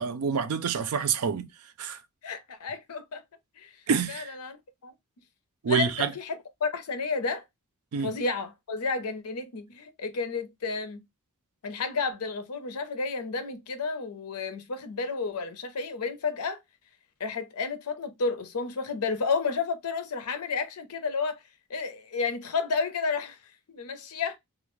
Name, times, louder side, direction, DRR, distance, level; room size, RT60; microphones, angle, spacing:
voice 1, 0.0-1.5 1.8-2.0 3.9-4.3 5.6-6.1 7.9-8.1, right 6 dB, 75° right, 0.4 m, -27 dB
voice 2, 2.2-3.2 3.6-3.7 4.1-4.6 4.8-4.9 5.7-7.4 8.0-11.0 11.6-16.6 17.2-21.4 21.7-23.4 23.7-24.4, left 4 dB, 85° left, 0.6 m, -31 dB
2.4 x 2.1 x 3.0 m
head